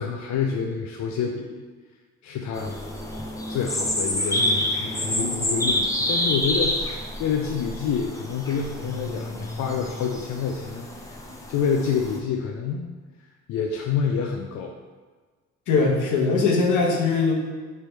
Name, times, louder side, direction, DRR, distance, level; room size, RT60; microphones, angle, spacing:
voice 1, 0.0-1.6 2.2-2.8 3.5-12.9 13.5-14.7, left 6 dB, 70° left, 2 dB, 0.4 m, -28 dB
sound 1, 2.5-12.2, left 1 dB, 10° left, 0.6 m, -28 dB
voice 2, 15.7-17.3, left 4 dB, 85° left, -1 dB, 0.9 m, -20 dB
3.3 x 3.1 x 4.5 m, 1.4 s
cardioid pair, 90°, 30 cm